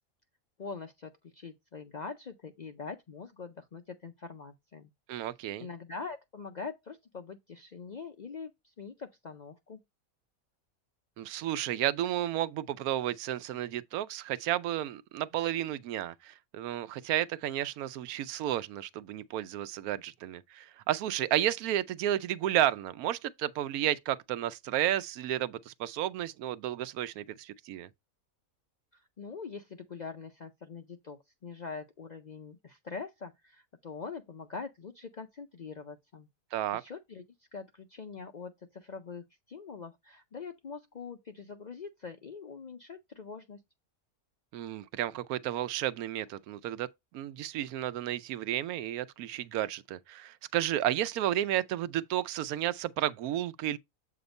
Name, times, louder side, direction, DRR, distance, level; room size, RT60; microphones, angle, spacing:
voice 1, 0.6-4.9 5.6-9.8 28.9-36.3 36.7-37.2 37.5-43.6, left 5 dB, 65° left, 0.4 m, -43 dB
voice 2, 5.1-5.7 11.2-27.9 36.5-36.8 44.5-46.9 47.1-53.8, right 12 dB, 90° right, 1.1 m, -32 dB
7.9 x 2.9 x 5.2 m
omnidirectional pair, 1.5 m